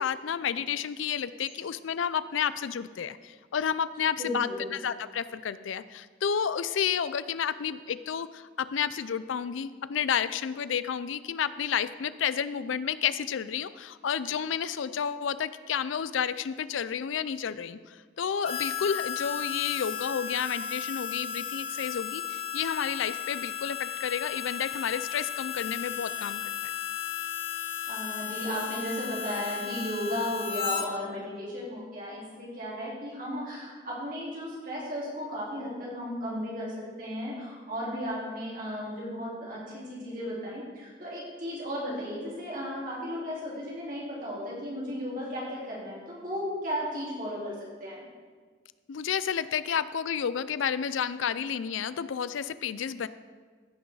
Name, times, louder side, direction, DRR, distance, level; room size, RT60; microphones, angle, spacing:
voice 1, 0.0-26.7 48.9-53.1, left 7 dB, 90° left, 15 dB, 0.4 m, -31 dB
voice 2, 4.2-4.6 27.7-47.5 47.8-48.0, equal, 45° right, -6 dB, 3.9 m, -35 dB
Harmonica, 18.4-30.9, left 8 dB, 30° left, 0.7 m, -34 dB
15.5 x 6.3 x 4.7 m, 1.5 s
head